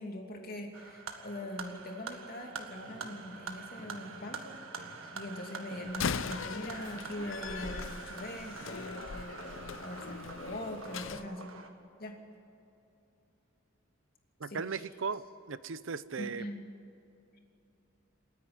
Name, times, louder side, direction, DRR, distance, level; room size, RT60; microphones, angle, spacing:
voice 1, 0.0-4.6 5.0-11.5 12.0-12.2 14.5-14.8 16.2-16.6, left 1 dB, 45° left, 2 dB, 2.8 m, -42 dB
sound 1, 0.7-11.7, right 5 dB, 85° right, 1.8 m, -46 dB
sound 2, 2.7-11.3, equal, 40° right, 3.0 m, -55 dB
Slam, 5.9-11.2, left 6 dB, 70° left, 0.6 m, -40 dB
voice 2, 14.4-15.2 15.5-16.4, right 5 dB, 65° right, 15 dB, 0.6 m, -37 dB
28.5 x 10.5 x 9.7 m, 2.8 s
head